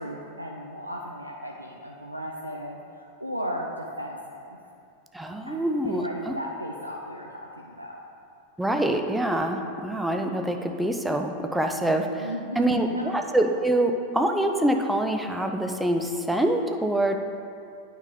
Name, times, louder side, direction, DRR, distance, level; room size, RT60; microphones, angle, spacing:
voice 1, 0.0-4.6 5.4-8.0 12.2-13.2, equal, 90° right, -1 dB, 0.5 m, -36 dB
voice 2, 5.1-6.3 8.6-12.3 12.6-17.2, right 1 dB, 5° right, 4 dB, 0.5 m, -25 dB
9.1 x 5.0 x 3.7 m, 2.4 s
figure-of-eight pair, 90°, 0 cm